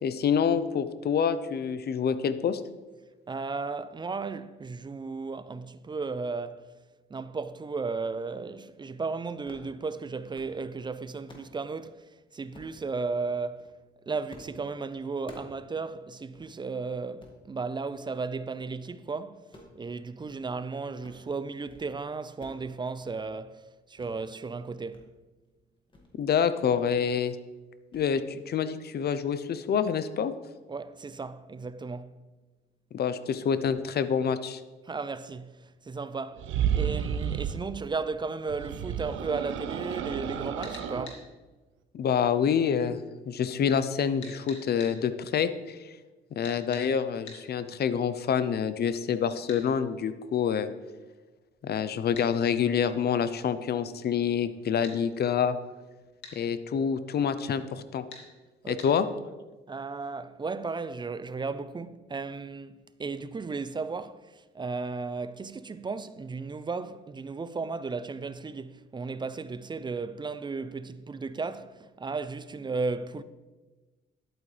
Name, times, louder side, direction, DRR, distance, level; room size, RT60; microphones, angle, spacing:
voice 1, 0.0-2.6 26.2-27.4 27.9-30.3 32.9-34.6 41.9-43.0 43.3-45.8 46.3-50.7 51.6-55.6 56.3-58.0 58.7-59.1, left 7 dB, 55° left, 0.7 m, -27 dB
voice 2, 3.3-6.7 7.1-13.8 14.1-19.5 19.7-25.0 30.7-32.2 34.8-36.5 36.7-41.3 58.6-59.0 59.7-73.2, right 4 dB, 25° right, 0.4 m, -35 dB
sound 1, 9.4-9.7 10.1-10.6 11.0-11.5 12.5-12.8 13.4-13.7 14.3-14.6 14.9-15.6 15.9-16.0 16.3-16.5 17.0-17.4 17.9-18.2 18.5-19.0 19.4-20.6 20.9-21.3 21.5-21.9 22.1-22.7 22.9-23.3 24.0-24.1 24.5-25.0 25.4-25.5 25.9-26.1 26.9-27.1 27.4-27.6 27.9-28.1, left 1 dB, 25° left, 1.9 m, -52 dB
sound 2, 36.4-37.6 38.5-41.1, right 9 dB, 85° right, 0.7 m, -31 dB
sound 3, 40.6-41.2 44.2-44.9 46.4-46.9 47.3-47.4 49.5-49.6 52.1-52.3 54.8-55.0 56.2-56.4 58.1-58.3 58.8-58.9, left 4 dB, 70° left, 2.3 m, -44 dB
11.0 x 8.8 x 3.3 m
cardioid pair, 90°, 20 cm